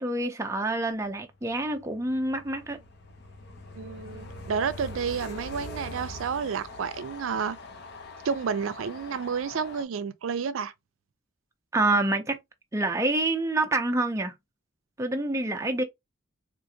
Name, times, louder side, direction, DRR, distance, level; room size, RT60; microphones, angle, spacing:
voice 1, 0.0-2.8 11.7-12.4 12.7-14.3 15.0-15.8, right 2 dB, 15° right, 0.4 m, -27 dB
Train, 1.4-9.8, left 2 dB, 55° left, 0.6 m, -43 dB
voice 2, 3.7-7.6 8.2-10.7, right 6 dB, 75° right, 0.4 m, -30 dB
3.7 x 2.4 x 2.7 m
head